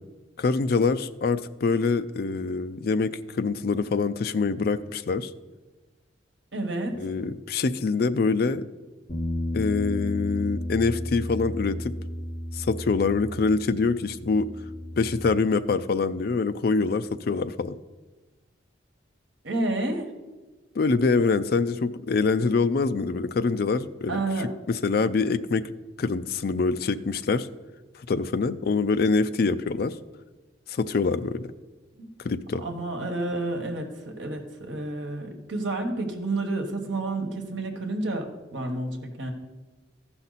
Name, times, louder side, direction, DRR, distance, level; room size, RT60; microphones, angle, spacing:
voice 1, 0.4-5.3 7.0-8.7 9.5-11.9 12.5-14.5 15.0-17.8 20.8-24.2 24.7-25.7 26.0-27.5 28.1-30.0 30.7-31.5 32.2-32.6, left 4 dB, 50° left, 11 dB, 0.4 m, -25 dB
voice 2, 6.5-7.0 19.4-20.1 24.1-24.5 32.0-32.1 32.6-39.3, right 2 dB, 70° right, 4 dB, 1.4 m, -30 dB
Bass guitar, 9.1-15.3, left 1 dB, 35° left, 1.4 m, -33 dB
14.5 x 5.8 x 4.0 m, 1.2 s
head